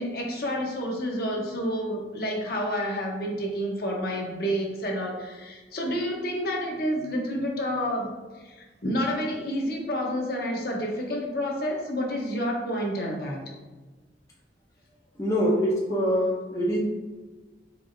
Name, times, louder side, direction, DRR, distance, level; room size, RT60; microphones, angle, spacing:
voice 1, 0.0-8.1 8.4-13.4, equal, 55° left, 0 dB, 0.9 m, -29 dB
voice 2, 15.2-16.8, equal, 20° left, -4 dB, 0.5 m, -24 dB
4.6 x 4.0 x 2.6 m, 1.3 s
head